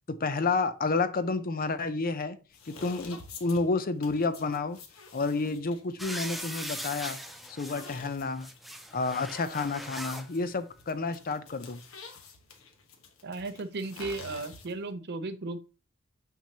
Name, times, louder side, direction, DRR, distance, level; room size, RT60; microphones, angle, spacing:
voice 1, 0.1-2.4 2.7-4.8 5.1-7.2 7.5-8.5 8.9-11.8, left 3 dB, 45° left, 0.6 m, -30 dB
sound 1, 2.5-14.9, left 4 dB, 75° left, 1.2 m, -50 dB
sound 2, 6.0-7.9 8.3-10.3 11.1-11.2, equal, ahead, 0.6 m, -40 dB
voice 2, 13.2-15.6, right 3 dB, 55° right, 0.6 m, -35 dB
6.9 x 6.0 x 2.8 m
head